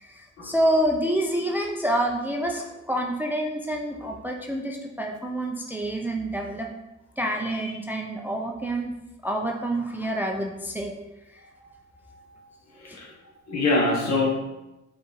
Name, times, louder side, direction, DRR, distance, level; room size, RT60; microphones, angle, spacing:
voice 1, 0.0-6.7 7.2-10.9 11.3-11.4 12.9-13.0, right 1 dB, 5° right, 0 dB, 0.4 m, -27 dB
voice 2, 12.7-13.1 13.5-14.3, left 2 dB, 60° left, 0 dB, 1.1 m, -24 dB
4.4 x 2.5 x 4.0 m, 0.97 s
cardioid pair, 90°, 30 cm